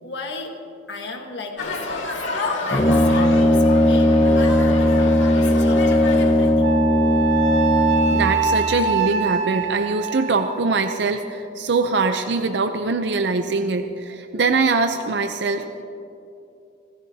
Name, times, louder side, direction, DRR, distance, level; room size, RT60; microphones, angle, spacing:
voice 1, 0.0-0.6 0.9-1.9 2.6-5.1 5.3-6.8, left 3 dB, 60° left, 2 dB, 1.5 m, -35 dB
sound 1, 1.6-6.5, left 2 dB, 80° left, 2.0 m, -29 dB
Brass instrument, 2.7-8.5, left 1 dB, 25° left, 0.7 m, -17 dB
Wind instrument woodwind instrument, 6.6-11.0, right 6 dB, 75° right, 2.3 m, -24 dB
voice 2, 8.1-15.8, right 3 dB, 60° right, 6 dB, 0.6 m, -22 dB
26.0 x 14.5 x 2.8 m, 2.7 s
head